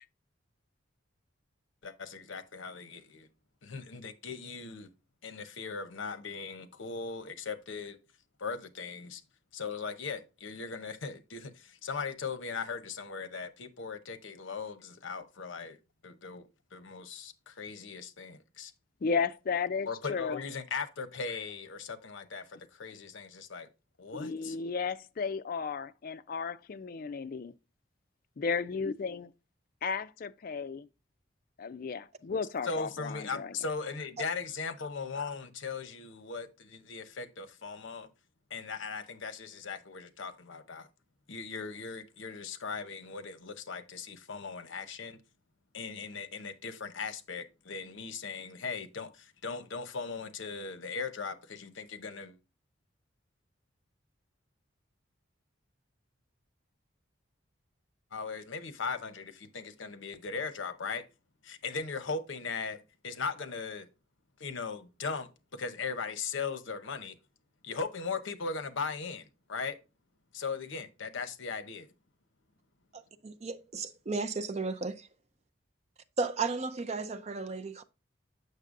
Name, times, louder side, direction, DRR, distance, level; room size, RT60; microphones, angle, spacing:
voice 1, 1.8-3.3 3.6-4.9 5.2-8.0 8.4-9.2 9.5-15.8 16.0-18.7 19.9-23.7 24.0-24.6 32.6-38.1 38.5-40.9 41.3-45.2 45.7-52.4 58.1-61.0 61.4-63.9 64.4-67.2 67.6-69.8 70.3-71.9, left 5 dB, 75° left, 0.7 m, -38 dB
voice 2, 19.0-20.4 24.2-27.5 28.4-29.3 29.8-30.9 31.6-33.5, left 5 dB, 45° left, 0.4 m, -34 dB
voice 3, 72.9-75.1 76.2-77.8, right 4 dB, 35° right, 0.5 m, -34 dB
6.6 x 6.5 x 2.5 m
head